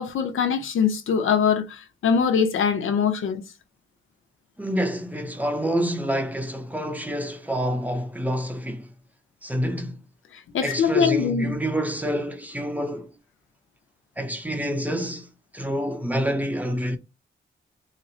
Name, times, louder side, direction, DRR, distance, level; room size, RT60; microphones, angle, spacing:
voice 1, 0.0-3.4 10.5-11.6, left 6 dB, 90° left, 0.8 m, -22 dB
voice 2, 4.6-8.9 9.4-10.0 10.6-13.1 14.2-17.0, equal, 10° right, 0.7 m, -27 dB
4.2 x 2.1 x 3.9 m
wide cardioid pair, 160°, 20 cm